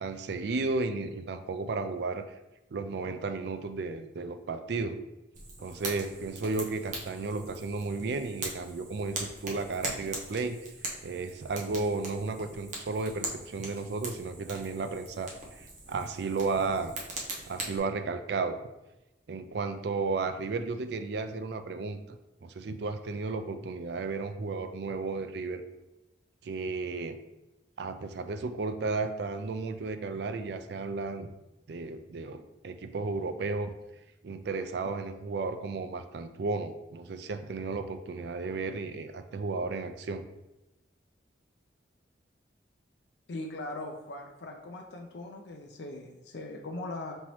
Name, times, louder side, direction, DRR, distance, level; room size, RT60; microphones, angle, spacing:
voice 1, 0.0-2.3 2.7-5.0 5.6-10.6 11.0-16.9 17.4-18.6 19.3-25.6 26.4-27.2 27.8-31.3 31.7-33.7 34.2-40.2, right 3 dB, 60° right, 9 dB, 0.4 m, -33 dB
Fire, 5.3-17.8, right 2 dB, 40° right, 0.8 m, -41 dB
voice 2, 43.3-47.2, left 2 dB, 65° left, 1 dB, 0.5 m, -40 dB
5.4 x 2.9 x 3.0 m, 0.99 s
head